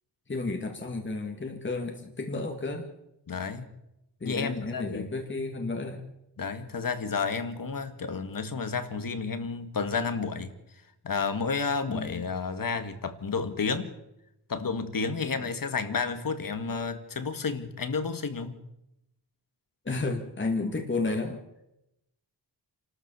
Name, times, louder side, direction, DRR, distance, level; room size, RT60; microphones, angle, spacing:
voice 1, 0.3-2.9 4.2-6.0 11.9-12.2 19.9-21.4, left 3 dB, 25° left, 2 dB, 2.2 m, -32 dB
voice 2, 3.3-3.7 4.2-5.2 6.4-10.5 11.0-13.9 14.5-18.6, left 5 dB, 50° left, 9 dB, 2.0 m, -31 dB
28.5 x 13.0 x 7.1 m, 0.86 s
wide cardioid pair, 125°, 42 cm